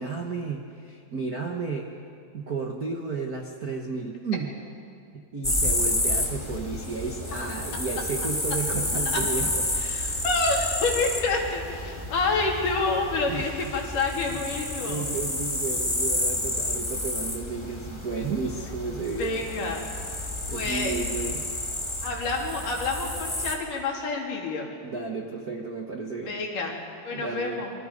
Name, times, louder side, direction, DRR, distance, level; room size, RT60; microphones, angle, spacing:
voice 1, 0.0-1.9 2.3-4.5 5.1-9.6 13.2-13.7 14.3-14.5 14.8-19.4 20.5-21.4 24.8-26.4 27.1-27.6, right 4 dB, 75° right, 2 dB, 0.8 m, -33 dB
sound 1, 5.4-23.5, left 1 dB, 10° left, 1.4 m, -30 dB
voice 2, 9.8-15.1 19.2-19.8 20.5-20.9 22.0-24.7 26.2-26.8 27.0-27.7, left 3 dB, 70° left, -1 dB, 4.4 m, -28 dB
28.0 x 23.0 x 5.3 m, 2.3 s
omnidirectional pair, 4.0 m